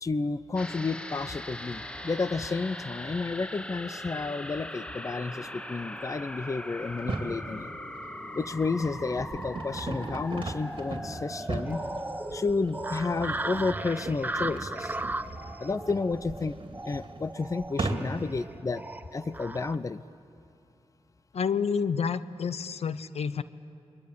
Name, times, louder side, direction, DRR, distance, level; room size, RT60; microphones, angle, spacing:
voice 1, 0.0-7.7 8.4-11.8 12.3-15.0 15.6-16.6 16.8-18.8 19.1-20.0, left 4 dB, 30° left, 15 dB, 0.6 m, -31 dB
sound 1, 0.6-15.2 15.5-15.6, left 1 dB, 10° left, 1.1 m, -41 dB
sound 2, 6.9-7.4 8.0-18.4, right 3 dB, 50° right, 2.7 m, -38 dB
sound 3, 11.6-19.8, right 2 dB, 15° right, 0.9 m, -37 dB
voice 2, 21.3-23.4, left 6 dB, 70° left, 14 dB, 0.8 m, -29 dB
29.5 x 23.0 x 8.5 m, 2.7 s
wide cardioid pair, 90°, 11 cm